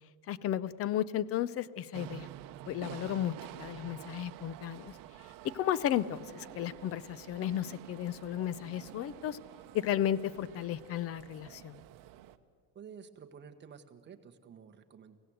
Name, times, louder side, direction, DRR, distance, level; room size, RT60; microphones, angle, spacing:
voice 1, 0.3-2.3 2.7-5.0 5.5-9.4 9.7-11.8, left 11 dB, 35° left, 19 dB, 0.5 m, -34 dB
sound 1, 1.9-12.4, right 13 dB, 50° right, 1.0 m, -49 dB
voice 2, 12.7-15.2, right 7 dB, 25° right, 7 dB, 1.2 m, -51 dB
24.5 x 17.0 x 7.8 m, 2.1 s
cardioid pair, 155°, 42 cm